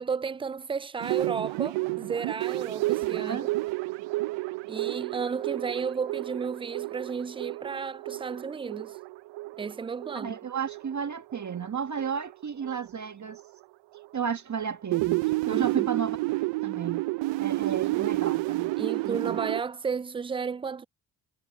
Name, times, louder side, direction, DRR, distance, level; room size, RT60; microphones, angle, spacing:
voice 1, 0.0-3.4 4.7-9.0 9.6-10.4 15.5-15.9 18.8-20.9, right 5 dB, 10° right, 0.4 m, -33 dB
sound 1, 1.0-11.7 12.0-12.3 12.6-12.9 13.3-13.4 13.9-14.1 14.6-19.6, right 21 dB, 70° right, 0.7 m, -30 dB
voice 2, 3.0-3.5 10.1-13.4 14.1-17.0 17.4-18.7 19.0-19.5, right 7 dB, 40° right, 1.6 m, -33 dB
hypercardioid pair, 55°, 45 cm